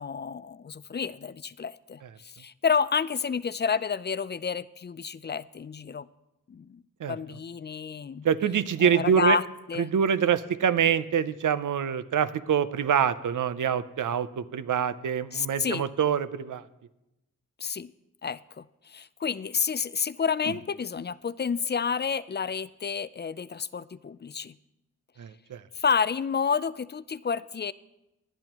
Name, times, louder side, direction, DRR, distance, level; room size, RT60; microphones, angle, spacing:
voice 1, 0.0-6.1 6.5-6.8 7.1-8.3 8.8-9.4 9.7-9.9 15.3-15.9 17.6-17.9 18.2-24.6 25.7-27.7, left 6 dB, 35° left, 17 dB, 0.4 m, -30 dB
voice 2, 8.2-9.4 9.8-16.6 25.2-25.6, right 8 dB, 70° right, 14 dB, 0.7 m, -25 dB
19.5 x 11.0 x 3.0 m, 0.92 s
cardioid pair, 50°, 32 cm